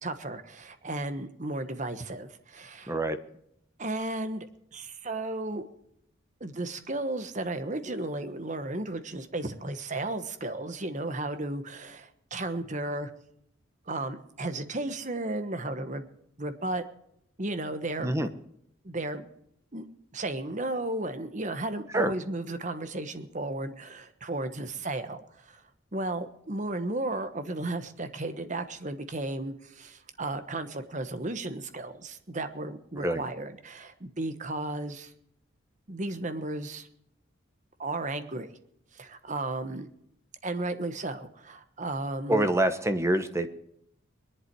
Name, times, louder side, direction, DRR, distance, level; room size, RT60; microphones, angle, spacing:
voice 1, 0.0-2.9 3.8-4.5 4.7-5.6 6.4-13.1 13.9-16.1 16.4-16.8 17.4-18.2 18.8-19.3 19.7-19.8 20.1-25.6 25.9-35.1 35.9-36.9 37.8-38.5 38.9-39.9 40.4-42.5, right 2 dB, 40° right, 10 dB, 1.3 m, -34 dB
voice 2, 2.9-3.2 18.0-18.3 21.9-22.1 33.0-33.2 42.3-43.5, right 1 dB, 15° right, 10 dB, 1.0 m, -26 dB
21.5 x 11.0 x 4.7 m, 0.74 s
head